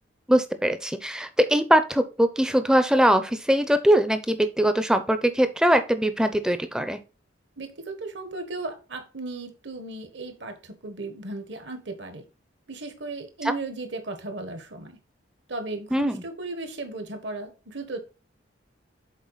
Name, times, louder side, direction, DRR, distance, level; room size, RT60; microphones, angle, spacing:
voice 1, 0.3-7.0 15.9-16.2, equal, 5° right, 0.5 m, -21 dB
voice 2, 7.6-12.2 12.7-15.0 15.5-18.0, right 3 dB, 65° right, 1.2 m, -36 dB
7.3 x 4.2 x 3.9 m
head